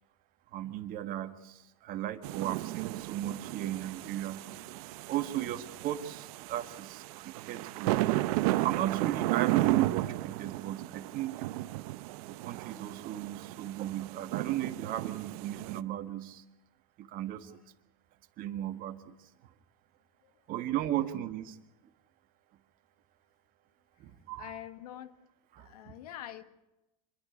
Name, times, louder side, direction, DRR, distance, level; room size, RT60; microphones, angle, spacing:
voice 1, 0.5-4.4 4.8-8.3 8.6-11.4 12.3-16.4 17.0-17.5 18.4-19.2 20.5-21.6 24.0-24.6 25.5-25.9, right 12 dB, 50° right, 1.7 m, -36 dB
sound 1, 2.2-15.8, right 17 dB, 70° right, 0.7 m, -34 dB
voice 2, 24.4-25.1 25.6-26.4, left 12 dB, 85° left, 1.5 m, -45 dB
26.5 x 11.5 x 9.8 m
supercardioid pair, 115°, 19 cm